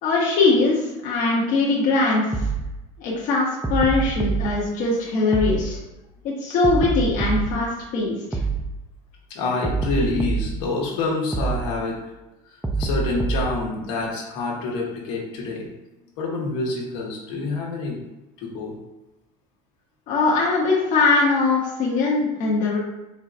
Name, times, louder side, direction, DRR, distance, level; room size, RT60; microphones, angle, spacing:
voice 1, 0.0-2.2 3.0-5.8 6.4-8.4 20.1-22.8, left 3 dB, 50° left, -4 dB, 0.9 m, -21 dB
sound 1, 2.3-2.7 3.6-4.5 5.3-5.7 6.6-7.5 8.3-8.7 9.6-10.5 11.3-11.7 12.6-13.5, right 4 dB, 5° right, 0.4 m, -25 dB
voice 2, 9.3-12.0 12.4-15.7 16.2-18.0 18.4-18.8, left 3 dB, 80° left, -3 dB, 1.4 m, -27 dB
4.7 x 3.7 x 2.5 m, 0.98 s
supercardioid pair, 125°, 17 cm